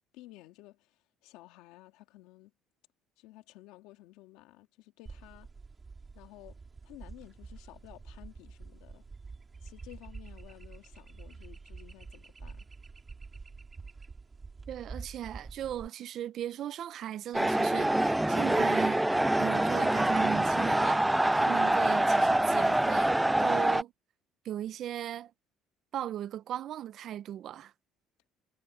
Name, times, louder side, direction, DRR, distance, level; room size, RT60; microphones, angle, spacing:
voice 1, 0.1-0.9 1.2-2.5 3.2-5.5 6.1-6.6 6.8-9.0 9.6-12.6, left 18 dB, 90° left, 2.5 m, -53 dB
sound 1, 5.1-15.9, right 4 dB, 20° right, 3.6 m, -47 dB
voice 2, 14.7-19.0 19.4-21.1 21.3-23.9 24.4-25.3 25.9-27.7, right 11 dB, 55° right, 0.6 m, -37 dB
sound 2, 17.3-23.8, right 1 dB, 5° right, 0.4 m, -25 dB
cardioid pair, 130°, 0 cm